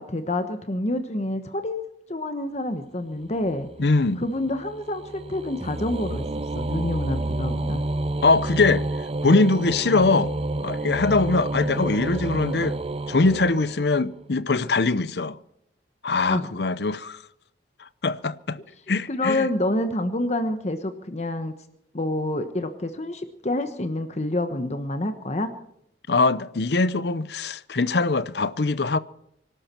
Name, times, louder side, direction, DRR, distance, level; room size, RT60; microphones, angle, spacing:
voice 1, 0.0-1.8 2.1-3.7 4.2-7.8 16.3-16.5 18.9-21.5 21.9-25.5, left 1 dB, 40° left, 1.2 m, -28 dB
sound 1, 3.3-14.2, right 2 dB, 35° right, 0.6 m, -30 dB
voice 2, 3.8-4.2 8.2-8.8 9.2-10.3 10.6-12.8 13.1-15.4 16.0-17.2 18.0-18.6 18.9-19.5 26.1-29.0, left 3 dB, 65° left, 0.7 m, -22 dB
24.5 x 12.5 x 4.5 m
head